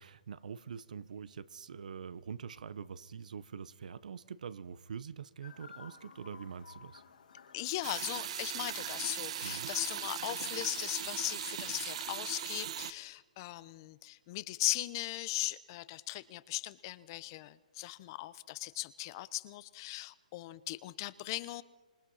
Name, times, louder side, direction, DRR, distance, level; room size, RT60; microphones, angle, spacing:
voice 1, 0.0-7.0 9.4-9.7, right 6 dB, 70° right, 16 dB, 1.2 m, -44 dB
Chirp tweet, 5.4-11.3, left 6 dB, 85° left, 5.6 m, -56 dB
voice 2, 7.5-21.6, left 18 dB, 30° left, 16 dB, 0.9 m, -38 dB
sound 1, 7.8-12.9, right 10 dB, 50° right, 1.3 m, -39 dB
26.5 x 22.0 x 5.7 m, 1.2 s
hypercardioid pair, 155°, 4 cm